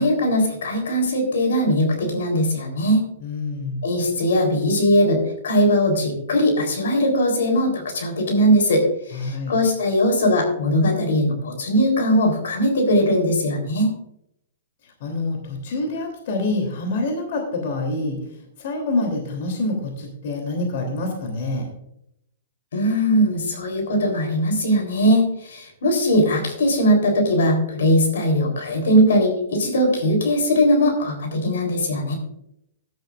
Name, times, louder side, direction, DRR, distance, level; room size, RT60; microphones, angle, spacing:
voice 1, 0.0-3.1 3.8-13.9 22.7-32.1, equal, 80° left, 3 dB, 3.8 m, -20 dB
voice 2, 3.2-3.8 9.1-9.5 14.8-18.2 18.6-21.7, left 2 dB, 55° left, 2 dB, 3.2 m, -26 dB
15.0 x 11.5 x 2.5 m, 0.77 s
hypercardioid pair, 145°, 0 cm